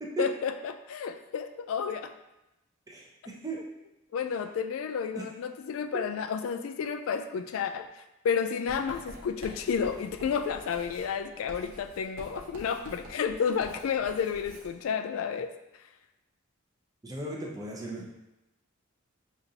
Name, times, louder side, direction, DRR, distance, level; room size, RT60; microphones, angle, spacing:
voice 1, 0.2-2.1 4.1-15.5, left 6 dB, 75° left, 9 dB, 0.3 m, -31 dB
voice 2, 2.9-3.6 5.1-5.2 17.0-18.1, right 2 dB, 15° right, -3 dB, 0.7 m, -36 dB
Writing, 8.7-14.7, right 1 dB, 85° right, 1.0 m, -48 dB
6.0 x 2.6 x 2.7 m, 0.94 s
head